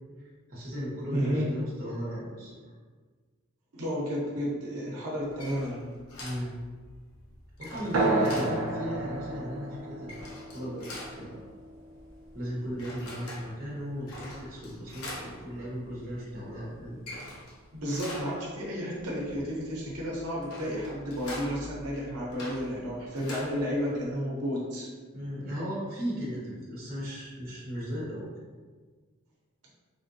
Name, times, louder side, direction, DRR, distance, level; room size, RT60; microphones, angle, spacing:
voice 1, 0.2-2.6 6.2-6.5 7.6-10.2 10.5-10.9 11.2-11.4 12.3-17.0 25.1-28.3, equal, 40° right, -7 dB, 1.0 m, -36 dB
voice 2, 1.1-1.4 3.7-5.9 17.7-24.9, equal, 90° right, -5 dB, 0.8 m, -32 dB
sound 1, 5.2-24.1, left 1 dB, 80° left, 0.8 m, -45 dB
sound 2, 7.9-13.0, right 2 dB, 60° right, 0.5 m, -32 dB
3.4 x 2.5 x 2.6 m, 1.5 s
head